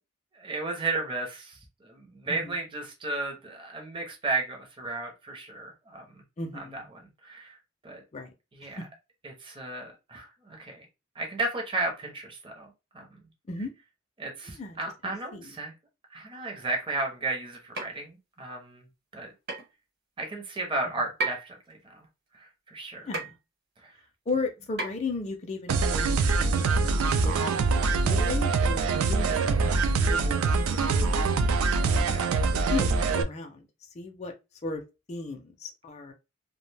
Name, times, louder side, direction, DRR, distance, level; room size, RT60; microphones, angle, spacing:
voice 1, 0.3-6.2 6.7-7.6 7.8-8.0 8.6-8.8 9.2-10.9 11.2-12.7 12.9-13.2 14.2-15.7 16.1-18.8 19.1-19.3 20.2-22.0 22.3-23.1 23.8-24.0 30.9-31.2 32.0-32.3, right 3 dB, 25° right, 0.6 m, -34 dB
voice 2, 6.4-6.9 8.1-8.3 8.6-8.8 13.5-13.7 14.6-15.5 23.0-23.4 24.3-30.4 30.8-31.4 31.9-32.2 32.5-34.3 34.6-34.8 35.1-36.1, left 3 dB, 30° left, 0.4 m, -36 dB
sound 1, 17.7-18.0 19.5-19.7 21.2-21.6 23.1-23.4 24.8-25.1, right 3 dB, 50° right, 1.0 m, -32 dB
sound 2, 25.7-33.2, right 4 dB, 85° right, 0.4 m, -24 dB
2.4 x 2.1 x 3.2 m
head